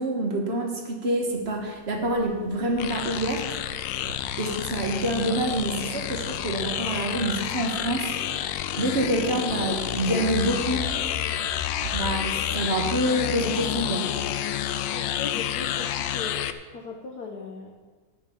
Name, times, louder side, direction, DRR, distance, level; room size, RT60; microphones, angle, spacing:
voice 1, 0.0-3.4 4.4-8.2 8.8-10.9 11.9-14.1, right 1 dB, 35° right, 2 dB, 1.7 m, -27 dB
sound 1, 1.2-12.2, right 3 dB, 55° right, 1.8 m, -45 dB
sound 2, 2.8-16.5, left 11 dB, 85° left, 1.3 m, -29 dB
voice 2, 14.9-16.4 16.7-17.7, left 4 dB, 60° left, 0 dB, 1.4 m, -38 dB
12.0 x 9.3 x 5.4 m, 1.4 s
omnidirectional pair, 2.0 m